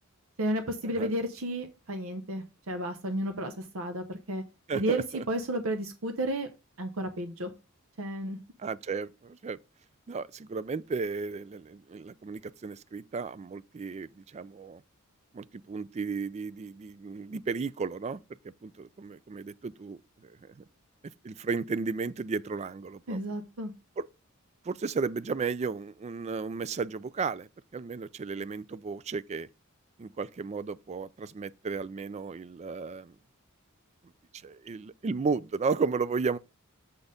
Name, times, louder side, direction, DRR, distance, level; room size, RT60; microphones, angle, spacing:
voice 1, 0.4-4.4 4.7-6.5 6.8-7.5 8.0-8.4 23.1-23.7, right 1 dB, 65° right, 0.8 m, -32 dB
voice 2, 4.7-5.2 8.6-9.6 10.1-14.8 15.3-18.2 18.6-20.5 21.2-23.2 24.6-29.5 30.0-33.1 34.4-36.4, right 4 dB, 30° right, 0.3 m, -34 dB
6.9 x 4.2 x 5.0 m
head